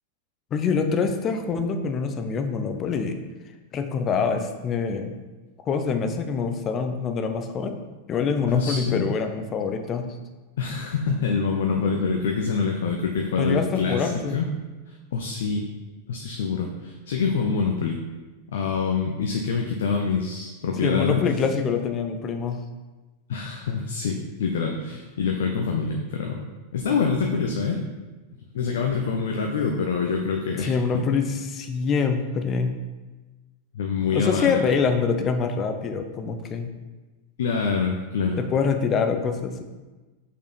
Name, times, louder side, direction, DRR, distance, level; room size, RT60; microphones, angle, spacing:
voice 1, 0.5-3.2 3.7-5.1 5.7-7.8 8.1-10.2 13.4-14.4 20.8-22.6 30.6-32.7 34.1-36.7 38.4-39.6, left 5 dB, 30° left, 7 dB, 0.8 m, -25 dB
voice 2, 8.5-9.0 10.6-14.5 14.9-15.7 16.1-18.0 18.5-21.2 23.3-26.5 26.7-27.8 28.5-30.7 33.7-34.7 37.4-38.4, left 5 dB, 60° left, 2 dB, 0.8 m, -25 dB
6.4 x 5.6 x 4.2 m, 1.2 s
figure-of-eight pair, 90°, 0 cm